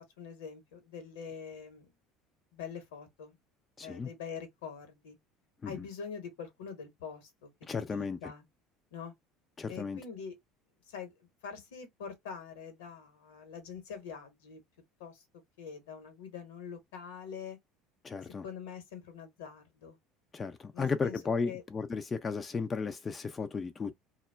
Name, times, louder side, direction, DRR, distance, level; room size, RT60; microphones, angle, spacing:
voice 1, 0.2-1.9 2.5-3.4 3.8-5.2 5.6-7.5 7.8-8.4 8.9-9.1 9.7-10.3 10.9-14.6 15.0-15.2 15.6-17.6 18.2-20.0 20.7-21.6, left 6 dB, 80° left, 1.0 m, -44 dB
voice 2, 3.8-4.1 5.6-5.7 7.7-8.2 9.6-10.0 18.0-18.4 20.3-23.9, left 5 dB, 30° left, 0.4 m, -34 dB
2.2 x 2.0 x 3.3 m
hypercardioid pair, 70°, 0 cm